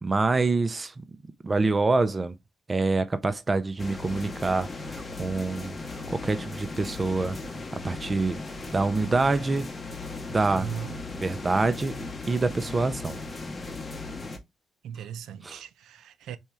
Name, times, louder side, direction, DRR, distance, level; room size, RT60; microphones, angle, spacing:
voice 1, 0.0-0.9 1.4-2.3 2.7-7.4 7.7-8.4 8.7-9.7 10.3-10.7 11.2-12.0 12.3-13.2 15.4-15.6, right 3 dB, 20° right, 0.4 m, -26 dB
sound 1, 3.8-14.4, left 3 dB, 20° left, 0.7 m, -37 dB
voice 2, 10.5-11.0 14.8-16.4, right 8 dB, 75° right, 0.5 m, -37 dB
4.3 x 3.5 x 3.3 m
cardioid pair, 170°, 0 cm